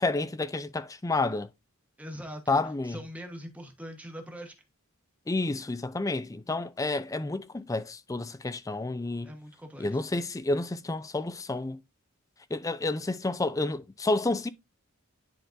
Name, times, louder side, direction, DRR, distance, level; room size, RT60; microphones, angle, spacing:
voice 1, 0.0-1.5 2.5-3.0 5.3-9.3 9.8-11.8 12.5-14.5, left 2 dB, 15° left, 0.3 m, -30 dB
voice 2, 2.0-2.6 2.8-4.5 9.2-10.0, equal, 5° right, 1.1 m, -42 dB
10.5 x 3.9 x 2.6 m
head